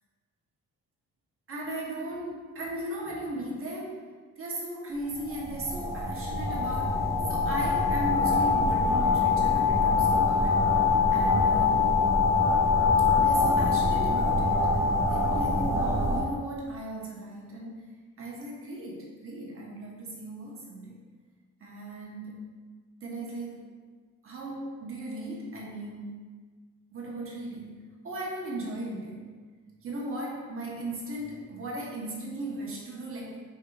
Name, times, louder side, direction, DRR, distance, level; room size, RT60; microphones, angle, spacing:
voice 1, 1.5-4.1 4.4-10.7 11.1-12.0 13.1-17.8 18.2-21.0 21.6-22.5 23.0-23.7 24.2-26.1 26.9-29.4 29.8-33.4, right 1 dB, 45° right, -3 dB, 0.9 m, -37 dB
sound 1, 5.1-16.2, left 4 dB, 10° right, 0.6 m, -24 dB
4.9 x 4.6 x 2.3 m, 1.4 s
wide cardioid pair, 175°, 30 cm